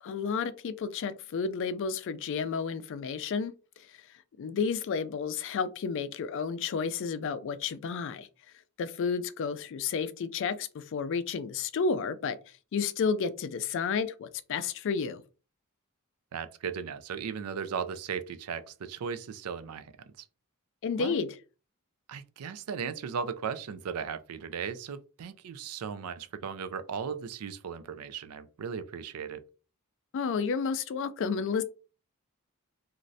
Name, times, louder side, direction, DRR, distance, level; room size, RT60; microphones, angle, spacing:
voice 1, 0.0-3.5 4.4-8.3 8.8-12.4 12.7-15.2 20.8-21.4 30.1-31.6, left 5 dB, 55° left, 0.3 m, -31 dB
voice 2, 16.3-19.9 21.0-21.2 22.1-29.4, right 6 dB, 80° right, 0.4 m, -37 dB
3.1 x 2.5 x 2.6 m
head